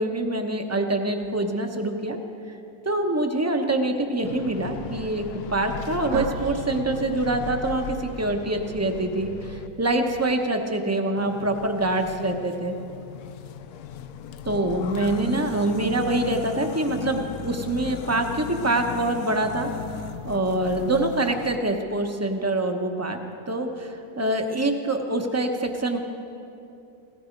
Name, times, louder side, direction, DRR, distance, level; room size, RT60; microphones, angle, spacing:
voice 1, 0.0-2.2 2.8-5.2 5.5-12.7 14.4-19.7 20.2-23.2 23.5-26.0, right 2 dB, 15° right, 4 dB, 0.7 m, -25 dB
sound 1, 4.2-9.7 11.2-21.6, left 8 dB, 90° left, 1.2 m, -37 dB
sound 2, 6.1-10.8, right 5 dB, 75° right, 1.0 m, -38 dB
17.0 x 14.5 x 5.2 m, 2.7 s
omnidirectional pair, 1.6 m